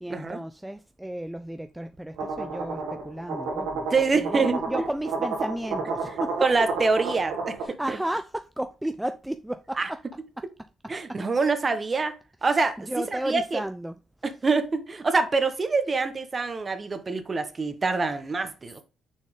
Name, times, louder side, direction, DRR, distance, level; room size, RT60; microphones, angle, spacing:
voice 1, 0.0-3.9 4.1-6.3 7.6-10.0 11.1-11.2 12.5-14.0, right 1 dB, 5° right, 0.4 m, -33 dB
sound 1, 2.2-7.6, right 4 dB, 85° right, 2.1 m, -31 dB
voice 2, 3.9-4.6 6.4-8.0 9.8-9.9 10.9-12.1 12.4-13.6 14.2-18.8, right 4 dB, 30° right, 1.0 m, -25 dB
6.3 x 4.2 x 3.6 m
cardioid pair, 90°, 0 cm